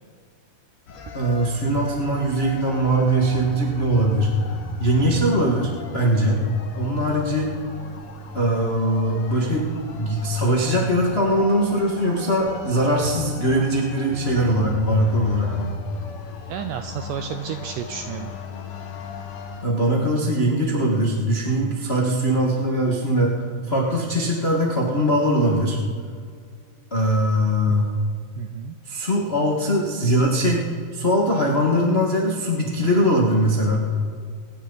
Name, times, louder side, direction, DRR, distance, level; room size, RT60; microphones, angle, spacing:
sound 1, 0.9-19.7, left 3 dB, 60° left, 1.6 m, -37 dB
voice 1, 1.1-6.4 6.7-7.5 8.3-9.7 9.9-15.7 19.6-25.8 26.9-27.9 28.9-30.6 30.9-34.1, equal, 85° left, -3 dB, 0.5 m, -21 dB
voice 2, 16.5-18.3 27.7-27.8 28.4-28.8, right 9 dB, 85° right, 7 dB, 1.9 m, -32 dB
25.5 x 10.5 x 4.0 m, 2.1 s
omnidirectional pair, 4.4 m